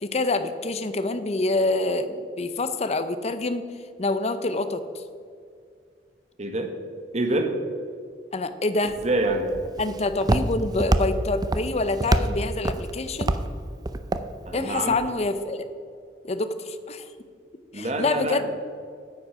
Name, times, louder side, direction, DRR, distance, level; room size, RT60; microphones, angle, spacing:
voice 1, 0.0-3.6 4.0-4.8 8.3-9.0 9.8-13.4 14.5-15.7 16.2-17.1 17.7-18.4, left 2 dB, 35° left, 10 dB, 0.6 m, -26 dB
voice 2, 6.4-6.7 7.1-7.5 9.0-9.5 14.5-15.0 17.7-18.5, right 2 dB, 40° right, 5 dB, 1.2 m, -26 dB
Walk footsteps, 8.9-15.1, right 1 dB, 20° right, 0.5 m, -27 dB
9.2 x 8.1 x 5.9 m, 2.2 s
head